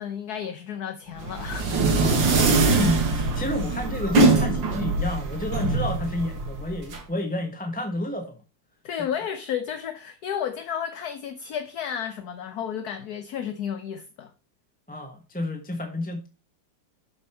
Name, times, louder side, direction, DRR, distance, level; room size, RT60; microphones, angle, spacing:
voice 1, 0.0-1.7 8.8-14.3, left 8 dB, 65° left, 1.2 m, -32 dB
sound 1, 1.2-7.0, right 3 dB, 80° right, 2.4 m, -22 dB
voice 2, 1.9-2.2 2.7-8.4 14.9-16.3, left 1 dB, 5° left, 0.9 m, -30 dB
12.5 x 5.3 x 4.3 m
omnidirectional pair, 2.0 m